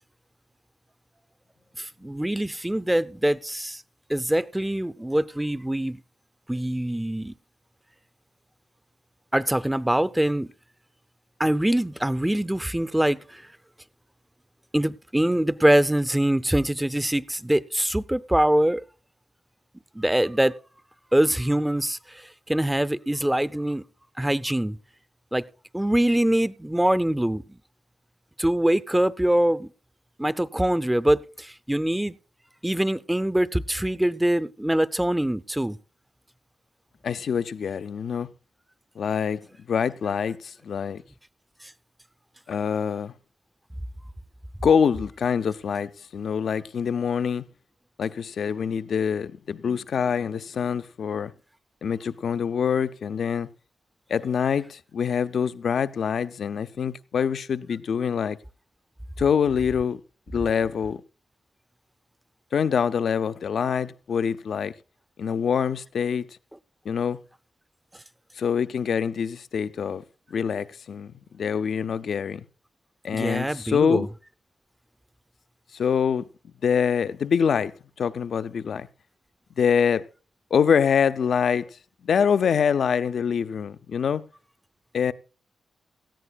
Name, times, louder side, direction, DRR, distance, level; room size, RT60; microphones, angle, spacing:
voice 1, 1.8-3.8 4.1-6.0 6.5-7.3 9.3-10.5 11.4-13.5 14.7-18.8 19.9-20.5 21.1-23.8 24.2-24.8 25.3-25.4 25.7-27.4 28.4-29.7 30.2-32.2 32.6-35.8 41.6-41.7 73.1-74.1, right 1 dB, 10° right, 0.6 m, -24 dB
voice 2, 37.0-38.3 39.0-41.0 42.5-43.1 44.6-47.4 48.0-51.3 51.8-53.5 54.1-58.4 59.2-60.0 60.3-61.0 62.5-64.7 65.2-66.3 66.8-67.2 68.4-70.0 70.3-72.5 73.0-74.1 75.7-76.3 76.6-77.7 78.0-78.9 79.6-80.1 80.5-81.7 82.0-84.2 84.9-85.1, left 7 dB, 75° left, 0.5 m, -25 dB
18.0 x 13.5 x 2.3 m
cardioid pair, 65°, 0 cm